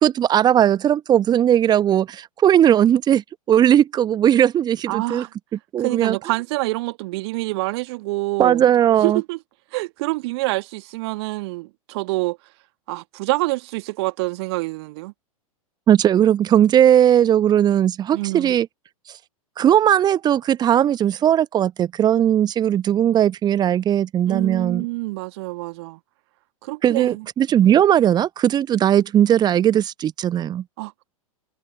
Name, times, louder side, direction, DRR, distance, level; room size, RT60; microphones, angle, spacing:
voice 1, 0.0-3.2 3.5-5.3 5.7-6.2 8.4-9.2 15.9-18.7 19.6-24.8 26.8-30.6, right 10 dB, 20° right, 1.1 m, -18 dB
voice 2, 4.9-5.3 5.8-8.6 9.0-9.4 9.7-12.4 12.9-15.1 18.1-18.5 24.3-26.0 26.6-27.3 30.8-31.1, right 23 dB, 45° right, 1.5 m, -26 dB
figure-of-eight pair, 95°, 18 cm